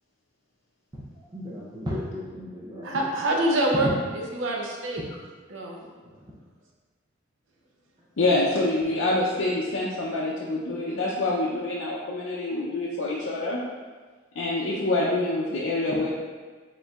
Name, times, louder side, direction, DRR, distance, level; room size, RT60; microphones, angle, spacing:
voice 1, 1.3-3.0 3.8-3.9 5.8-5.9, equal, 25° right, -6 dB, 0.6 m, -33 dB
voice 2, 2.8-3.9 4.3-5.0 5.5-5.8, right 1 dB, 85° right, -1 dB, 0.7 m, -25 dB
voice 3, 8.2-13.6 14.4-16.1, left 2 dB, 80° left, -6 dB, 0.5 m, -26 dB
4.4 x 3.8 x 2.3 m, 1.4 s
head